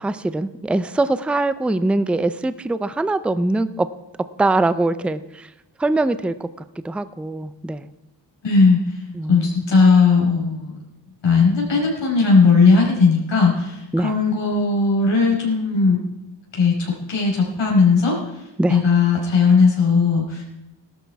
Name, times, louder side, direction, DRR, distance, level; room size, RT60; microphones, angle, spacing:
voice 1, 0.0-3.9 4.4-5.2 5.8-6.5 6.8-7.9 9.1-9.7 13.9-14.1 18.6-18.8, right 2 dB, 5° right, 13 dB, 0.5 m, -22 dB
voice 2, 8.4-9.0 9.3-10.8 11.2-16.0 16.5-18.4 18.7-20.5, left 4 dB, 80° left, -2 dB, 5.3 m, -17 dB
17.0 x 12.5 x 4.7 m, 0.92 s
wide cardioid pair, 125°, 43 cm